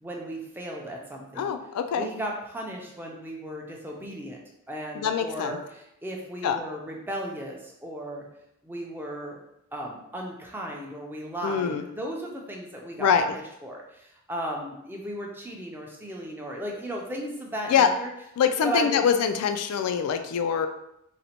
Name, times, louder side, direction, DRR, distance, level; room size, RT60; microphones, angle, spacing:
voice 1, 0.0-1.5 1.9-4.4 4.7-8.2 8.6-9.4 9.7-18.1 18.6-19.0, right 1 dB, 10° right, -1 dB, 0.4 m, -35 dB
voice 2, 1.4-2.1 5.0-5.6 6.4-6.6 11.4-11.8 13.0-13.3 17.7-17.9 18.4-20.7, left 7 dB, 85° left, 12 dB, 0.3 m, -24 dB
4.0 x 2.1 x 2.8 m, 0.82 s
head